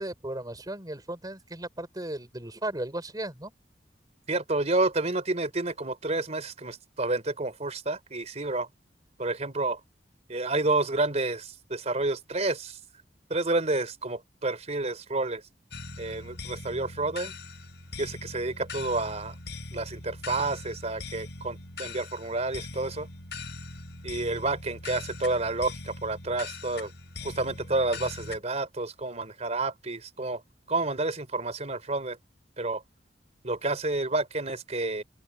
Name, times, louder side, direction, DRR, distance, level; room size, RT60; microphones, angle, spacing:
voice 1, 0.0-3.5, right 1 dB, 20° right, 4.2 m, -36 dB
voice 2, 4.3-8.7 9.2-9.8 10.3-12.8 13.3-15.4 16.0-17.3 18.0-19.4 19.7-23.1 24.0-26.9 27.2-30.4 30.7-32.2 32.6-32.8 33.4-35.0, right 2 dB, 40° right, 3.8 m, -29 dB
sound 1, 15.7-28.4, left 3 dB, 75° left, 4.7 m, -41 dB
open air
head